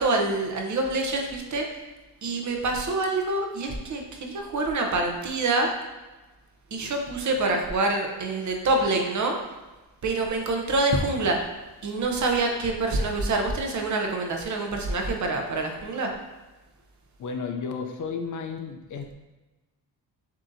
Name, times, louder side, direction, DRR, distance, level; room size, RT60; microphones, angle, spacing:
voice 1, 0.0-1.7 2.2-5.7 6.7-9.3 10.0-11.4 11.8-16.1, right 2 dB, 50° right, 2 dB, 0.7 m, -26 dB
voice 2, 17.2-19.1, left 5 dB, 50° left, 5 dB, 0.5 m, -33 dB
7.3 x 2.8 x 2.6 m, 1.1 s
cardioid pair, 140°, 39 cm